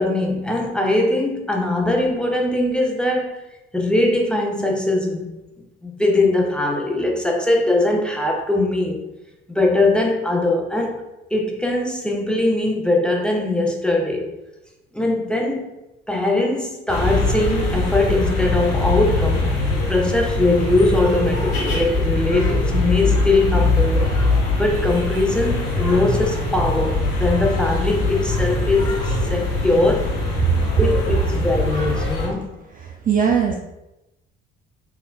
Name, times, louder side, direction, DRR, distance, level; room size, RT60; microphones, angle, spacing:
voice 1, 0.0-3.4 3.7-5.4 5.8-9.0 9.5-11.0 11.3-14.3 14.9-15.8 16.1-19.5 19.9-24.1 24.5-29.0 29.3-30.2 30.8-32.5, left 2 dB, 5° left, 0 dB, 0.7 m, -21 dB
sound 1, 16.9-32.3, left 2 dB, 65° left, 1.4 m, -22 dB
voice 2, 32.8-33.5, right 7 dB, 30° right, 1 dB, 0.4 m, -19 dB
4.0 x 3.3 x 2.3 m, 0.95 s
figure-of-eight pair, 50°, 30 cm